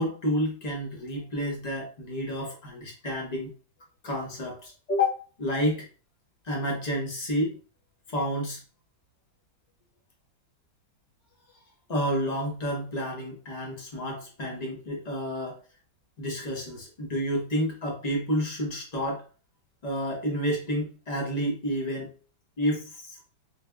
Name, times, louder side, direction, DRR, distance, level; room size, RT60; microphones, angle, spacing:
voice 1, 0.0-3.5 4.0-5.9 6.4-7.6 8.1-8.6 11.9-15.6 16.2-19.2 19.8-22.1 22.6-23.2, equal, 35° left, -1 dB, 0.7 m, -30 dB
3.5 x 3.2 x 2.2 m, 0.36 s
omnidirectional pair, 2.0 m